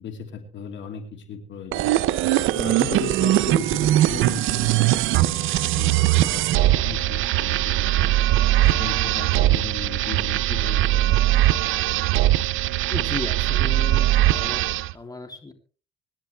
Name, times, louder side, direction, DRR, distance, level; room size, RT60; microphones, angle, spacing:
voice 1, 0.0-1.9 2.5-8.4 8.8-11.6, left 7 dB, 70° left, 5 dB, 2.6 m, -37 dB
sound 1, 1.7-14.9, right 15 dB, 90° right, 0.6 m, -21 dB
voice 2, 12.9-14.7 14.9-15.5, left 3 dB, 20° left, 5 dB, 3.0 m, -35 dB
25.5 x 10.5 x 3.3 m, 0.38 s
cardioid pair, 90°, 20 cm